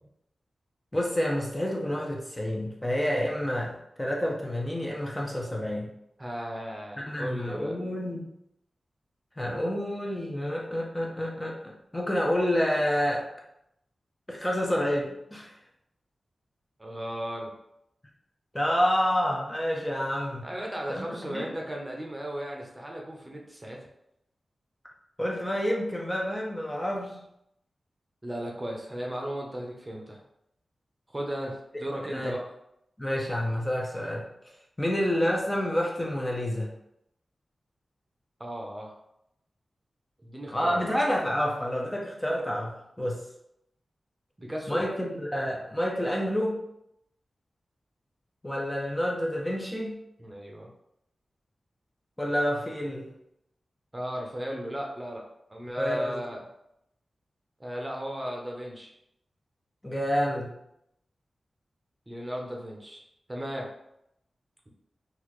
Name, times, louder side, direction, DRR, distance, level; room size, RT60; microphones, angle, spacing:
voice 1, 0.9-5.9 7.1-8.3 9.4-13.3 14.3-15.5 18.5-20.5 20.9-21.5 25.2-27.2 32.1-32.4 33.0-34.2 34.8-36.7 40.5-43.2 44.7-46.6 48.4-50.0 52.2-53.1 55.8-56.2 59.8-60.5, equal, 15° left, -2 dB, 0.6 m, -28 dB
voice 2, 6.2-7.7 16.8-17.5 20.4-23.9 28.2-30.2 31.1-32.4 38.4-38.9 40.2-40.9 44.4-44.9 50.2-50.7 53.9-56.5 57.6-58.9 62.1-63.0 63.3-63.7, equal, 20° right, 0 dB, 0.7 m, -36 dB
4.0 x 2.5 x 3.1 m, 0.80 s
wide cardioid pair, 75°, 0 cm